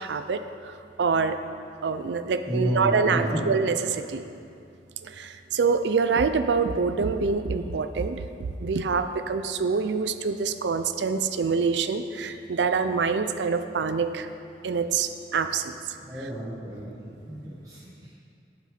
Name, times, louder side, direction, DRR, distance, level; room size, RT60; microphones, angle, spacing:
voice 1, 0.0-1.4 1.8-4.2 5.0-8.2 8.6-14.3 14.6-15.9, right 5 dB, 80° right, 10 dB, 0.4 m, -26 dB
voice 2, 2.4-3.4 16.0-18.1, equal, 20° right, -8 dB, 1.2 m, -31 dB
11.0 x 6.7 x 5.0 m, 2.5 s
head